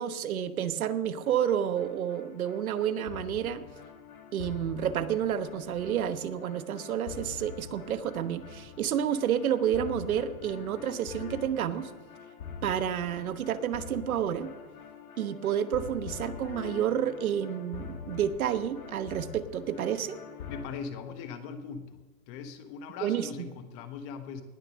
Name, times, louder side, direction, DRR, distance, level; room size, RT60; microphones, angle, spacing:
voice 1, 0.0-3.6 4.3-11.9 12.6-14.5 15.2-20.2 23.0-23.3, right 9 dB, 80° right, 11 dB, 1.2 m, -30 dB
sound 1, 1.2-20.7, left 6 dB, 80° left, 2.2 m, -44 dB
voice 2, 20.5-22.0 22.3-24.4, left 6 dB, 35° left, 9 dB, 1.4 m, -40 dB
19.0 x 6.7 x 6.4 m, 1.2 s
hypercardioid pair, 140°, 42 cm